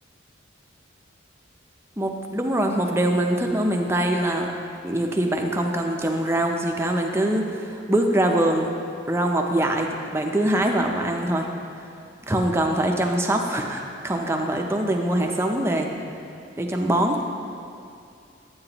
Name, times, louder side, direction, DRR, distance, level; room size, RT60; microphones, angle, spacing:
voice 1, 2.0-4.5 4.8-8.7 9.1-11.5 12.3-15.9 16.6-17.2, right 1 dB, 15° right, 2 dB, 0.5 m, -23 dB
9.7 x 8.6 x 2.9 m, 2.4 s
head